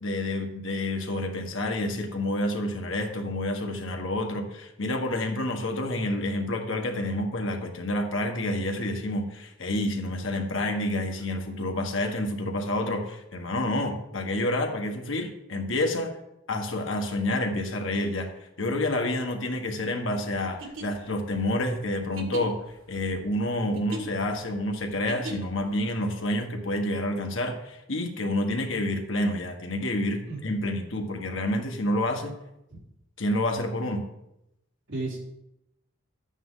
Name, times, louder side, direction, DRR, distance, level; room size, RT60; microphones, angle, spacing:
voice 1, 0.0-16.1 16.5-18.3 18.6-22.6 22.9-32.3 33.2-34.0, left 1 dB, 75° left, 3 dB, 1.6 m, -29 dB
sound 1, 20.6-25.7, right 2 dB, 85° right, 2.0 m, -40 dB
voice 2, 30.3-30.7 32.7-32.8 34.9-35.2, right 2 dB, 65° right, -4 dB, 3.6 m, -34 dB
12.0 x 9.0 x 3.9 m, 0.85 s
head